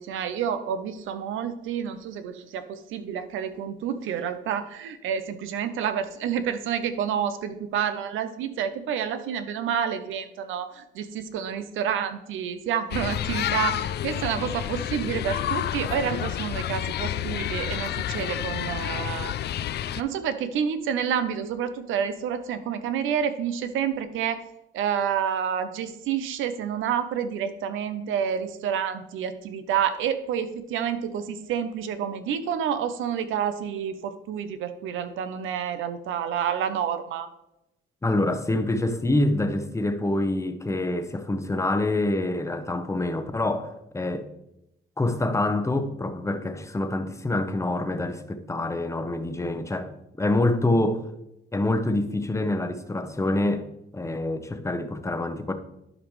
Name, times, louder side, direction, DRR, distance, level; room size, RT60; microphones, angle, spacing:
voice 1, 0.0-19.3 20.0-24.4 24.7-37.3, right 8 dB, 85° right, 0.8 m, -29 dB
sound 1, 12.9-20.0, left 11 dB, 55° left, 0.4 m, -29 dB
voice 2, 38.0-44.3 45.0-49.9 50.2-51.0 51.5-53.7 53.9-55.5, left 2 dB, 15° left, 0.9 m, -26 dB
11.5 x 5.2 x 3.2 m
cardioid pair, 90°, 20 cm